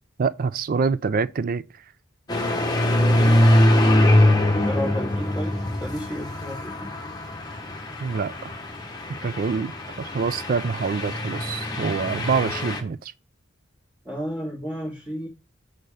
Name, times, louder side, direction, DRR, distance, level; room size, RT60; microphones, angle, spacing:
voice 1, 0.2-1.6 8.0-8.5 9.2-13.1, right 5 dB, 45° right, 0.4 m, -26 dB
sound 1, 2.3-12.8, left 1 dB, 20° left, 1.1 m, -22 dB
voice 2, 2.9-3.7 4.6-6.9 14.0-15.3, equal, 10° right, 2.1 m, -32 dB
6.4 x 4.4 x 4.9 m
head